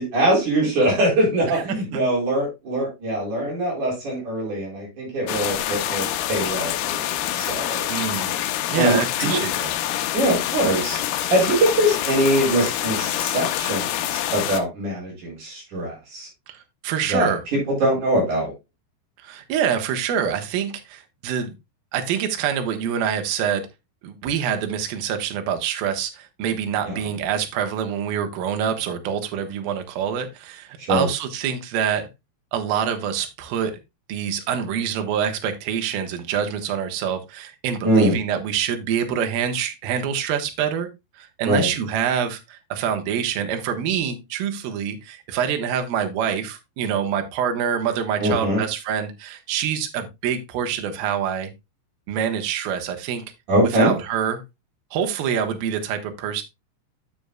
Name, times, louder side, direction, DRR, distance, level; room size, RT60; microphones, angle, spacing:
voice 1, 0.0-7.1 7.3-7.9 8.7-9.4 10.1-11.0 11.3-16.3 17.1-17.3 17.7-18.5 26.8-27.0 30.8-31.1 37.8-38.1 41.4-41.7 48.2-48.6 53.5-53.9, right 1 dB, 50° right, 5.5 m, -22 dB
voice 2, 1.5-2.0 7.9-8.3 8.7-9.7 16.5-17.4 19.2-21.5 21.9-23.7 24.0-32.1 32.5-33.8 34.1-40.9 41.2-51.5 52.1-53.2 53.7-54.4 54.9-56.4, right 8 dB, 75° right, 2.6 m, -26 dB
sound 1, 5.3-14.6, left 13 dB, 80° left, 2.5 m, -26 dB
10.5 x 6.9 x 2.2 m
omnidirectional pair, 4.8 m